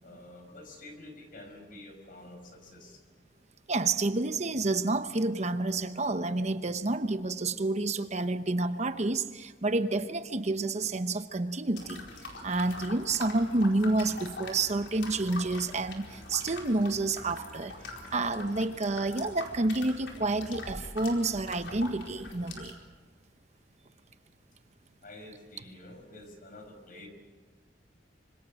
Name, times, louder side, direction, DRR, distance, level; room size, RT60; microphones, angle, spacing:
voice 1, 0.0-3.0 25.0-27.1, left 1 dB, 50° left, 5 dB, 5.2 m, -48 dB
voice 2, 3.7-12.1 12.4-17.7 18.1-22.8, right 2 dB, 40° right, 10 dB, 0.9 m, -29 dB
sound 1, 11.7-22.7, left 2 dB, 80° left, 4.5 m, -44 dB
25.5 x 25.5 x 6.4 m, 1.4 s
head